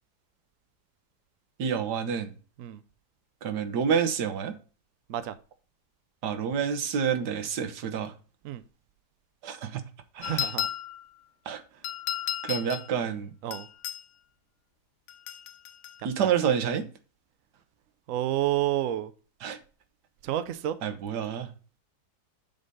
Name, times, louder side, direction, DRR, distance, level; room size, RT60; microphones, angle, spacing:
voice 1, 1.6-2.3 3.4-4.5 6.2-8.1 9.4-9.8 10.1-10.5 11.5-11.6 12.4-13.3 16.0-16.9 19.4-19.6 20.8-21.5, right 7 dB, 85° right, 1.6 m, -28 dB
sound 1, 10.2-11.0 11.8-12.9 13.5-14.0 15.1-16.0, left 11 dB, 60° left, 0.8 m, -33 dB
voice 2, 10.3-10.7 13.4-13.7 16.2-16.3 18.1-19.1 20.2-20.8, right 13 dB, 65° right, 0.9 m, -29 dB
7.1 x 4.0 x 5.2 m
omnidirectional pair, 1.7 m